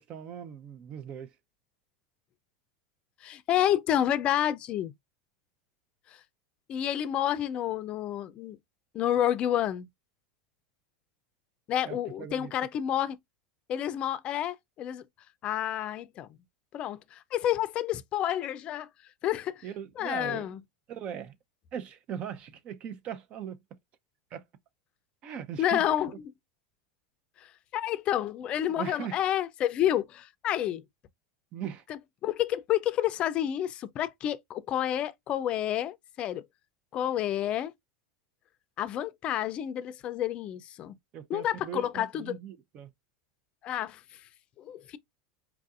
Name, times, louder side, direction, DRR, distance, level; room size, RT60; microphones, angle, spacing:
voice 1, 0.0-1.3 11.8-12.5 19.6-20.5 20.9-21.4 21.7-23.6 24.3-24.4 25.2-26.2 28.8-29.2 31.5-31.8 41.1-42.9, right 9 dB, 40° right, 0.7 m, -39 dB
voice 2, 3.2-4.9 6.7-8.6 8.9-9.9 11.7-13.2 13.7-15.0 15.4-16.3 16.7-18.9 19.2-19.6 20.0-20.6 25.6-26.1 27.4-30.8 31.9-36.4 36.9-37.7 38.8-41.0 41.3-42.4 43.6-44.0 44.6-45.0, left 11 dB, 40° left, 0.5 m, -29 dB
4.6 x 2.6 x 2.4 m
supercardioid pair, 120°, 3 cm